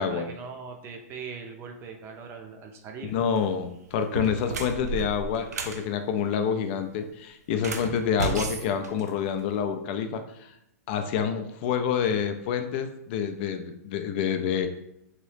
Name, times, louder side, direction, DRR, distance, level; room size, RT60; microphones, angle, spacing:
voice 1, 0.1-3.1, right 5 dB, 30° right, 3 dB, 0.5 m, -40 dB
voice 2, 3.0-10.5 10.9-14.7, left 7 dB, 45° left, 7 dB, 0.3 m, -28 dB
sound 1, 3.2-3.5 4.0-5.8 7.5-9.6, right 4 dB, 85° right, 0.4 m, -34 dB
2.9 x 2.7 x 3.3 m, 0.80 s
hypercardioid pair, 125°, 9 cm